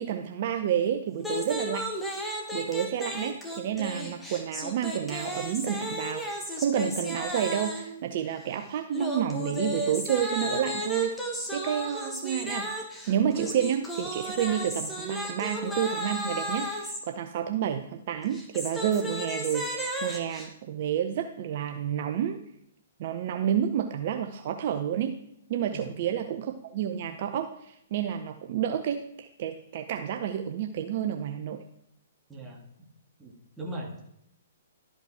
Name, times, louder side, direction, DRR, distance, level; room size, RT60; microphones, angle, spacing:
voice 1, 0.0-1.9 2.5-12.7 13.1-22.4 23.0-25.1 25.5-31.6, right 9 dB, 45° right, 6 dB, 0.6 m, -30 dB
sound 1, 1.2-8.0 8.9-17.0 18.2-20.5, equal, 5° left, 1.5 m, -34 dB
voice 2, 32.3-32.6 33.2-34.0, right 1 dB, 10° right, -1 dB, 2.0 m, -39 dB
12.0 x 5.3 x 4.8 m, 0.74 s
figure-of-eight pair, 120°, 0 cm